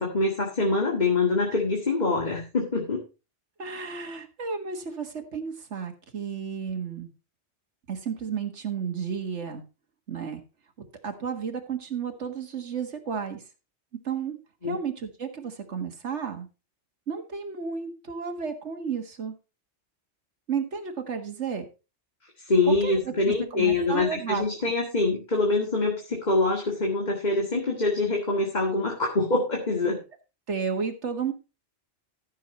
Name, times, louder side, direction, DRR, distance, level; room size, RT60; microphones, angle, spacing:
voice 1, 0.0-3.0 14.6-14.8 22.4-30.0, left 3 dB, 35° left, 1 dB, 2.1 m, -25 dB
voice 2, 3.6-7.1 7.9-9.6 10.1-10.4 11.0-13.4 14.0-14.4 14.6-16.5 17.1-19.3 20.5-21.7 22.7-24.5 30.5-31.3, right 6 dB, 75° right, 5 dB, 2.0 m, -32 dB
14.0 x 6.7 x 4.2 m, 0.31 s
omnidirectional pair, 1.2 m